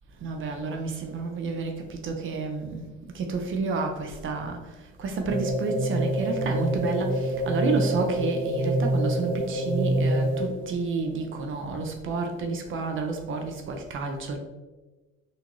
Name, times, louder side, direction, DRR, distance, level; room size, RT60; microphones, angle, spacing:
voice 1, 0.2-2.8 3.1-4.6 5.0-14.4, right 4 dB, 45° right, 3 dB, 0.5 m, -30 dB
sound 1, 5.3-10.7, right 1 dB, 85° right, 1.3 m, -26 dB
3.8 x 2.5 x 3.0 m, 1.2 s
cardioid pair, 120°, 30 cm